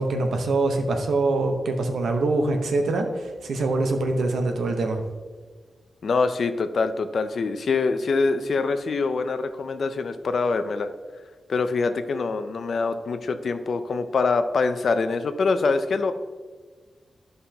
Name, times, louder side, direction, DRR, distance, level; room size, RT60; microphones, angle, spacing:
voice 1, 0.0-5.0, right 2 dB, 80° right, 4 dB, 1.0 m, -24 dB
voice 2, 6.0-10.9 11.5-16.1, left 4 dB, 55° left, 9 dB, 0.5 m, -24 dB
12.5 x 5.5 x 2.9 m, 1.4 s
wide cardioid pair, 160°, 0 cm